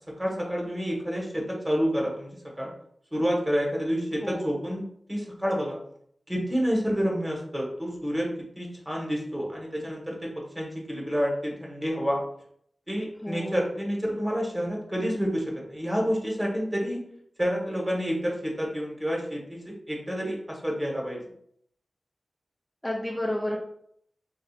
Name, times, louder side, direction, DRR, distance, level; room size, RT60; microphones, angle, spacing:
voice 1, 0.2-2.7 3.1-4.8 5.1-5.8 6.3-8.3 8.6-10.3 10.5-12.2 12.9-17.0 17.4-21.2, equal, 15° right, -2 dB, 1.2 m, -29 dB
voice 2, 4.2-4.6 13.2-13.7 22.8-23.6, left 1 dB, 10° left, -3 dB, 0.5 m, -31 dB
4.5 x 2.4 x 2.4 m, 0.68 s
cardioid pair, 55°, 0 cm